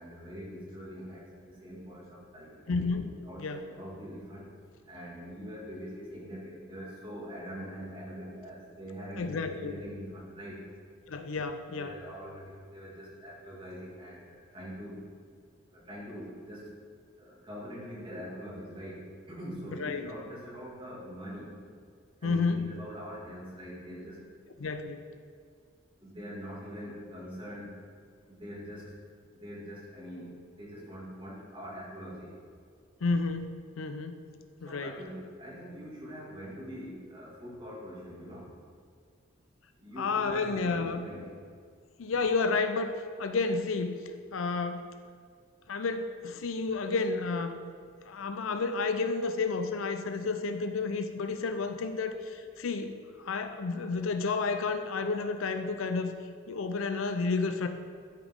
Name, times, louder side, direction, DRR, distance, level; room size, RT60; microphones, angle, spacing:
voice 1, 0.0-2.9 3.2-4.5 4.8-10.6 11.7-15.0 15.7-16.8 17.2-21.5 22.2-24.2 26.0-27.8 28.3-29.0 29.3-32.3 34.6-38.5 39.8-41.3 46.7-46.8, equal, 25° right, -6 dB, 2.2 m, -43 dB
voice 2, 2.7-3.1 3.4-3.6 9.2-9.8 11.1-11.9 19.8-20.1 22.2-22.7 24.6-25.0 33.0-34.2 34.6-35.0 40.0-41.0 42.0-44.0 44.3-44.9 45.7-47.6 48.0-56.1 56.5-57.7, left 4 dB, 75° left, 7 dB, 0.5 m, -31 dB
12.0 x 5.1 x 3.7 m, 2.1 s
head